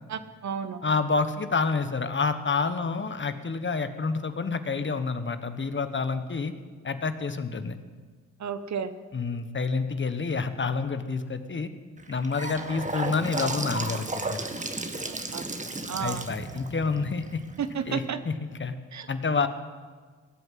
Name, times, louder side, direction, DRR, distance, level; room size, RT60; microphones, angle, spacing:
voice 1, 0.1-0.8 8.4-8.9 15.1-15.4 15.9-16.2 17.6-18.2 18.9-19.1, right 7 dB, 55° right, 11 dB, 1.1 m, -32 dB
voice 2, 0.8-6.5 6.8-7.8 9.1-11.7 12.1-14.5 16.0-17.4 17.9-18.8 19.1-19.5, left 4 dB, 35° left, 10 dB, 1.3 m, -28 dB
Gurgling / Sink (filling or washing) / Bathtub (filling or washing), 12.0-18.0, right 2 dB, 20° right, 1.7 m, -34 dB
18.5 x 7.9 x 7.6 m, 1.5 s
supercardioid pair, 50°, 34 cm